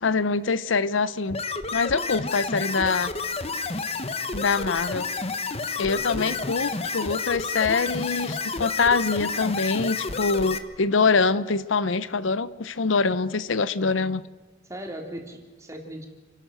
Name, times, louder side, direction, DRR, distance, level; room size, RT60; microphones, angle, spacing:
voice 1, 0.0-1.4 1.7-3.1 4.3-5.1 5.8-14.2, left 4 dB, 75° left, 16 dB, 0.7 m, -24 dB
sound 1, 1.3-10.6, left 4 dB, 30° left, 1.2 m, -30 dB
voice 2, 5.9-6.5 14.6-16.1, equal, 15° right, 2 dB, 3.3 m, -38 dB
29.5 x 12.0 x 7.7 m, 1.4 s
head